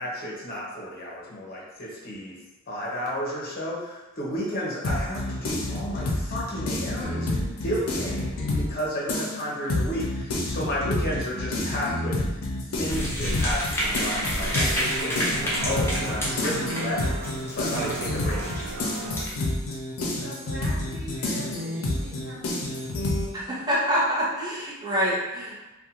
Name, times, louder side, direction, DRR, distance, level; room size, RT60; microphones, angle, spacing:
voice 1, 0.0-2.4 2.7-12.2 12.7-18.7, equal, 45° left, -4 dB, 0.8 m, -32 dB
sound 1, 4.8-8.8 9.1-23.3, left 1 dB, 75° left, 0.5 m, -29 dB
sound 2, 12.9-19.3, equal, 10° left, 0.6 m, -30 dB
sound 3, 13.8-19.3, right 4 dB, 80° right, 0.3 m, -36 dB
voice 2, 20.1-22.8, equal, 50° right, -8 dB, 1.0 m, -42 dB
voice 3, 23.3-25.6, equal, 20° right, -8 dB, 0.8 m, -26 dB
2.5 x 2.2 x 2.8 m, 1.0 s
head